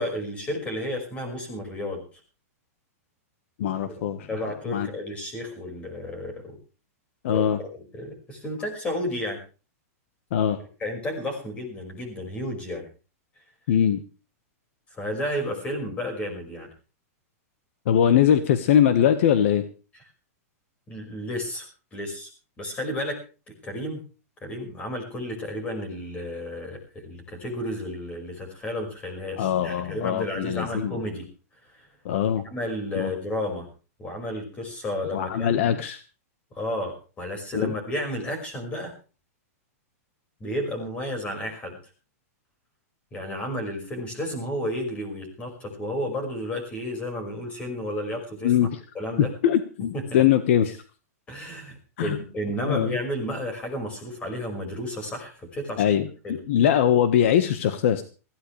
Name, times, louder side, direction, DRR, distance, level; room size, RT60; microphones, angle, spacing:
voice 1, 0.0-2.0 3.8-4.0 4.3-6.6 7.3-9.4 10.8-12.8 14.9-16.7 19.9-20.0 20.9-22.3 22.6-23.2 23.5-24.0 24.4-31.3 31.8-31.9 32.4-33.7 34.0-35.8 36.5-38.9 40.4-41.8 43.1-48.5 48.9-49.3 49.9-50.2 51.3-55.9 56.2-56.4, left 1 dB, 15° left, 3 dB, 5.5 m, -32 dB
voice 2, 3.6-4.3 4.7-4.9 7.2-7.6 10.3-10.6 13.7-14.0 17.9-19.6 29.4-30.9 32.0-32.4 32.9-33.1 35.1-36.0 37.5-37.7 48.4-48.7 49.4-50.8 52.0-52.2 52.6-52.9 55.8-56.1 56.5-58.0, left 9 dB, 55° left, 10 dB, 1.4 m, -21 dB
20.5 x 16.0 x 3.3 m, 0.35 s
supercardioid pair, 165°, 8 cm